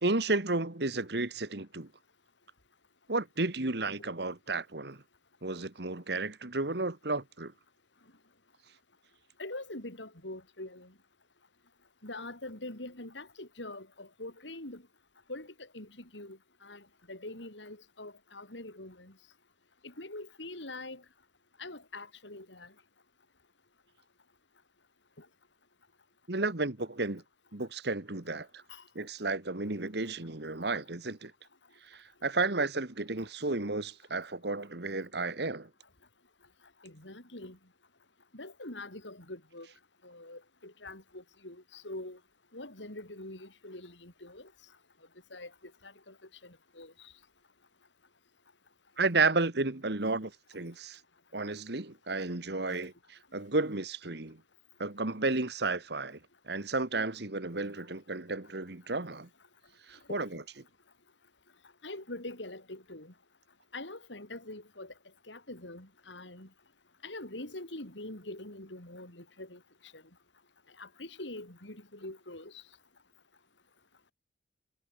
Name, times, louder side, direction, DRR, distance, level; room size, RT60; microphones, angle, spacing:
voice 1, 0.0-1.9 3.1-5.0 5.4-7.5 26.3-27.2 27.5-28.6 29.0-31.3 31.9-35.7 49.0-51.0 51.3-54.4 54.8-56.2 56.5-59.3 59.9-60.4, right 3 dB, 65° right, 1.8 m, -32 dB
voice 2, 9.4-10.9 12.0-14.8 15.3-19.1 19.8-21.0 21.6-22.7 25.2-25.3 28.7-28.8 36.8-37.6 38.3-39.7 40.0-42.2 42.5-44.5 45.3-45.5 45.8-46.1 46.4-47.1 60.1-60.2 61.8-63.1 63.7-64.9 65.3-66.5 67.0-69.6 69.9-70.0 70.8-72.6, left 2 dB, 85° left, 6.7 m, -44 dB
head